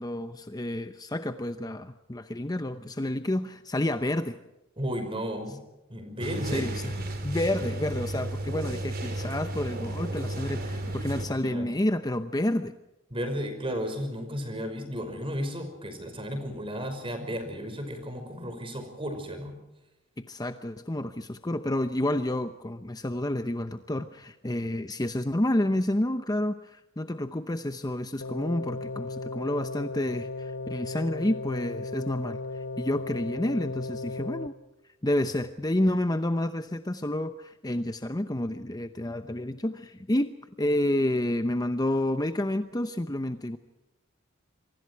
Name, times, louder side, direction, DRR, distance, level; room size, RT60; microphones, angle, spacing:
voice 1, 0.0-4.4 6.4-6.9 7.2-12.7 20.2-34.5 35.0-40.3 40.6-43.6, left 1 dB, 20° left, 9 dB, 0.8 m, -29 dB
voice 2, 4.8-5.6 5.9-6.7 11.4-11.7 13.1-19.5, equal, 25° right, 7 dB, 5.6 m, -34 dB
sound 1, 6.2-11.3, right 1 dB, 45° right, 4.3 m, -33 dB
sound 2, 28.2-34.5, left 3 dB, 80° left, 1.3 m, -36 dB
27.0 x 24.5 x 4.7 m, 0.97 s
head